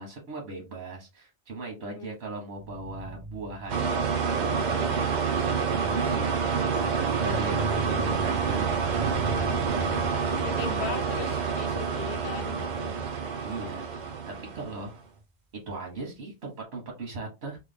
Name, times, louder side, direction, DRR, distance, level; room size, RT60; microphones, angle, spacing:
voice 1, 0.0-5.1 5.7-8.7 9.1-9.4 13.4-14.2 14.5-15.0 15.7-17.6, right 2 dB, 90° right, 1.3 m, -38 dB
voice 2, 1.8-2.1 4.7-5.1 10.4-12.9, left 7 dB, 85° left, 0.9 m, -39 dB
sound 1, 2.6-14.2 14.9-15.2, right 1 dB, 10° right, 0.5 m, -40 dB
sound 2, 3.7-14.9, right 6 dB, 55° right, 0.6 m, -28 dB
3.0 x 2.1 x 3.4 m
omnidirectional pair, 1.1 m